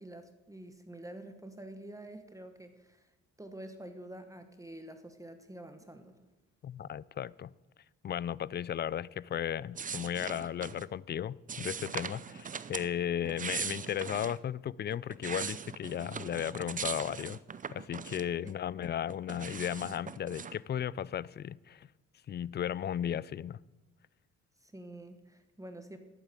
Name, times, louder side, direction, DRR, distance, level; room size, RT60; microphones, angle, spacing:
voice 1, 0.0-3.1 3.4-6.1 18.4-18.6 24.6-26.0, right 1 dB, 10° right, 7 dB, 1.1 m, -47 dB
voice 2, 6.6-7.5 8.0-17.4 17.7-21.9 22.3-23.6, left 10 dB, 35° left, 23 dB, 0.4 m, -35 dB
sound 1, 9.7-10.9 11.5-12.9 13.2-14.4 14.9-18.5 18.8-20.6, right 6 dB, 25° right, 0.5 m, -40 dB
11.5 x 8.8 x 7.5 m, 1.1 s
cardioid pair, 90°, 30 cm